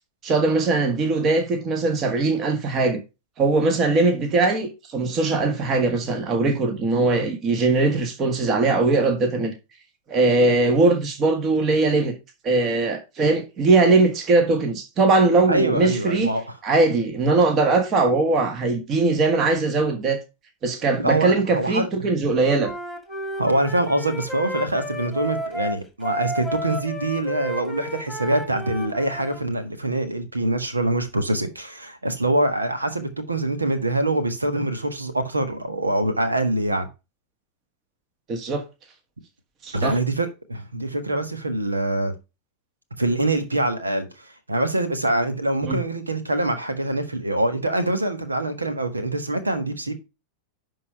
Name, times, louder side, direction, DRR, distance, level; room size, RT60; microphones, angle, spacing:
voice 1, 0.2-3.0 3.4-9.5 10.1-12.1 12.4-16.3 16.6-20.2 20.6-22.7 38.3-38.6 39.6-40.0 45.6-45.8, right 3 dB, 30° right, 1.6 m, -20 dB
voice 2, 15.5-16.4 21.0-21.9 23.4-36.9 39.7-42.1 43.0-49.9, right 1 dB, 80° right, 1.4 m, -24 dB
Wind instrument woodwind instrument, 22.6-29.4, left 1 dB, ahead, 2.2 m, -32 dB
11.0 x 3.9 x 4.8 m
figure-of-eight pair, 90°, 0 cm